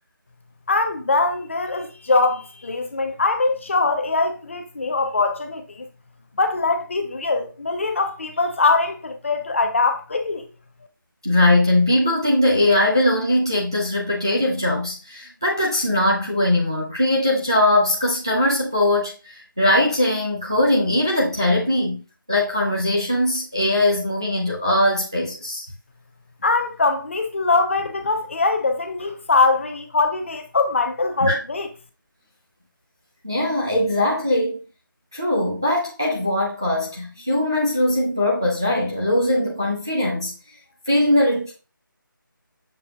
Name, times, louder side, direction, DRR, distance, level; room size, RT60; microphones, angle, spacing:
voice 1, 0.7-5.9 6.4-10.5 26.4-31.7, left 3 dB, 35° left, 0.6 m, -22 dB
voice 2, 11.2-22.0 22.3-25.6 31.2-31.4 33.2-34.6 35.1-40.3 40.9-41.5, left 1 dB, 10° right, 0.3 m, -20 dB
6.6 x 2.7 x 2.7 m
figure-of-eight pair, 170°, 11 cm